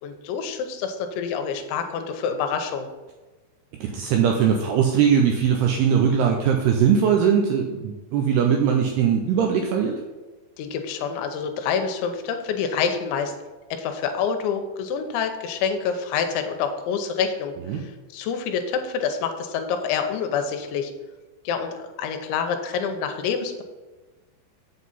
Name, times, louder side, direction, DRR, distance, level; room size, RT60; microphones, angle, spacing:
voice 1, 0.0-2.9 10.6-13.3 13.7-20.9 21.4-23.6, left 6 dB, 80° left, 6 dB, 3.0 m, -27 dB
voice 2, 3.8-9.9 17.7-17.8, right 7 dB, 85° right, 2 dB, 2.3 m, -20 dB
7.8 x 7.4 x 4.1 m, 1.2 s
omnidirectional pair, 5.4 m